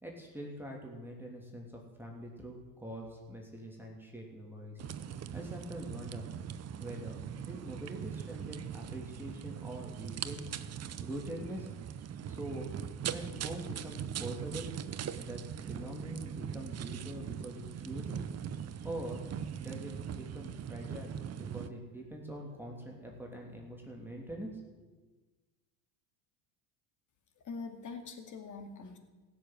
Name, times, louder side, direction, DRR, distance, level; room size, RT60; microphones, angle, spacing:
voice 1, 0.0-4.8 5.3-6.2 6.8-10.6 11.0-11.7 12.4-12.7 13.1-14.7 15.1-18.2 18.8-19.2 19.6-24.9, right 1 dB, 5° right, -1 dB, 2.9 m, -44 dB
sound 1, 4.8-21.7, right 9 dB, 35° right, 0.8 m, -41 dB
voice 2, 27.4-29.0, left 4 dB, 40° left, 6 dB, 2.3 m, -43 dB
16.0 x 7.2 x 9.2 m, 1.3 s
supercardioid pair, 100°, 47 cm